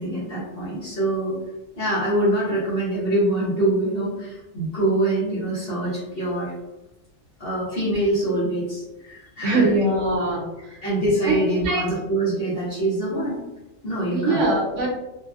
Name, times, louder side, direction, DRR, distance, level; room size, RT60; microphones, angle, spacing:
voice 1, 0.0-1.3 1.8-6.5 7.4-9.7 10.8-13.4 13.8-14.5, right 1 dB, 50° left, -9 dB, 1.2 m, -24 dB
voice 2, 9.4-10.5 11.3-11.4 11.6-11.8 14.1-14.9, right 2 dB, 70° right, -2 dB, 1.2 m, -21 dB
3.3 x 2.3 x 2.4 m, 1.0 s
omnidirectional pair, 1.3 m